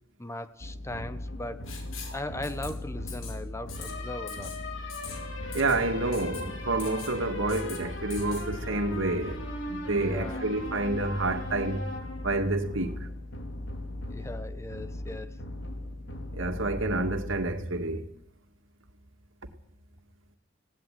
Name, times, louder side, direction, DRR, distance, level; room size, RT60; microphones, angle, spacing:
voice 1, 0.2-1.7 2.1-4.6 10.0-10.5 14.1-15.4, left 1 dB, 15° left, 1.1 m, -38 dB
sound 1, 0.6-18.2, left 1 dB, 70° left, 4.3 m, -37 dB
Writing, 1.7-2.2 2.4-2.7 3.1-3.4 3.7-3.9 4.3-4.6 4.9-5.2 5.5-5.8 6.1-6.4 6.8-7.1 7.5-7.8 8.1-8.4, left 7 dB, 90° left, 5.2 m, -42 dB
voice 2, 5.5-11.9 12.2-13.1 16.3-18.1, right 2 dB, 75° right, 2.2 m, -29 dB
18.0 x 17.0 x 9.3 m
head